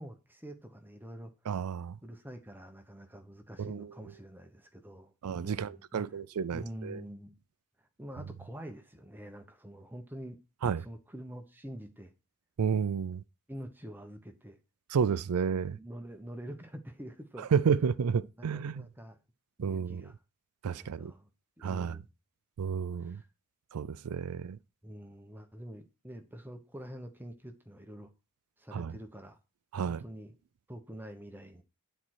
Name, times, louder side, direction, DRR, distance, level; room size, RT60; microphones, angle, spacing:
voice 1, 0.0-1.3 2.0-6.1 6.5-7.4 8.0-10.4 10.8-12.1 13.5-14.6 15.5-17.5 18.4-19.2 19.6-20.2 20.7-21.3 21.6-22.1 23.0-23.3 24.3-24.5 24.8-28.1 28.6-29.4 29.8-30.4 30.7-31.6, equal, 10° right, 0.9 m, -46 dB
voice 2, 1.5-2.0 3.6-3.9 5.2-7.0 10.6-10.9 12.6-13.2 14.9-15.8 17.5-18.9 19.6-20.0 20.6-21.1 21.6-22.0 22.6-23.2 23.7-24.6 28.7-28.9 29.7-30.0, right 6 dB, 85° right, 0.4 m, -31 dB
10.0 x 4.3 x 6.3 m
head